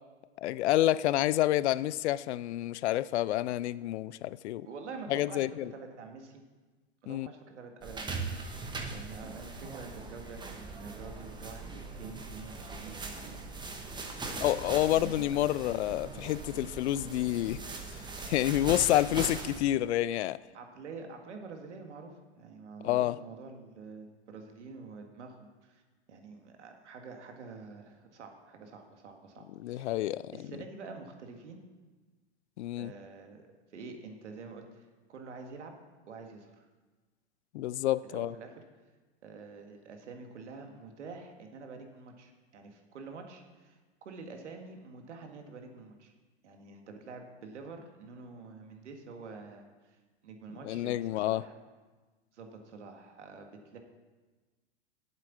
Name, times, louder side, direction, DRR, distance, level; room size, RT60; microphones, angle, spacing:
voice 1, 0.4-4.7 5.1-5.7 7.1-7.3 14.4-17.6 17.9-18.0 18.3-20.4 22.8-23.2 29.6-30.3 32.6-32.9 37.5-38.3 50.6-51.4, left 14 dB, 70° left, 0.5 m, -28 dB
voice 2, 4.6-6.4 7.0-8.4 8.9-13.7 14.2-14.6 14.9-15.2 20.5-25.8 26.1-30.1 30.3-31.6 32.8-33.5 33.7-35.7 36.1-36.7 38.0-38.6 39.2-46.1 46.4-50.0 50.2-51.5 52.3-53.8, right 4 dB, 85° right, 1.8 m, -47 dB
sound 1, 7.8-19.6, right 3 dB, 15° right, 1.2 m, -40 dB
9.1 x 8.2 x 7.3 m
hypercardioid pair, 120°, 35 cm